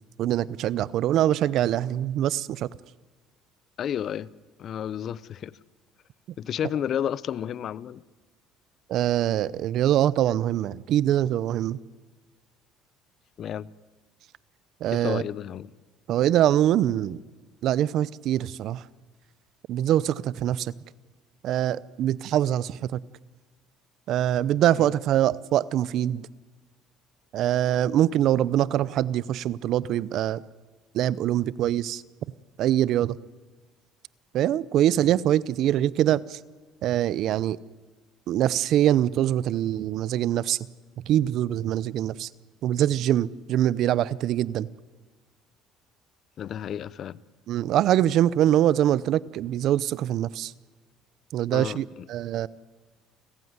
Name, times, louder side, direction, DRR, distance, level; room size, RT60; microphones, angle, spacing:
voice 1, 0.2-2.7 8.9-11.8 14.8-15.2 16.1-17.2 17.6-18.8 19.7-20.7 21.4-23.0 24.1-26.3 27.3-30.4 30.9-32.0 32.6-33.2 34.3-36.4 36.8-37.6 38.3-40.6 41.1-42.3 42.6-44.7 47.5-50.5 51.3-52.5, right 12 dB, 60° right, 0.7 m, -24 dB
voice 2, 3.8-4.3 4.6-5.5 6.4-8.0 13.4-13.7 14.9-15.7 24.7-24.9 46.4-47.2 51.5-52.0, left 9 dB, 50° left, 0.7 m, -31 dB
29.5 x 15.5 x 9.7 m
cardioid pair, 110°, 0 cm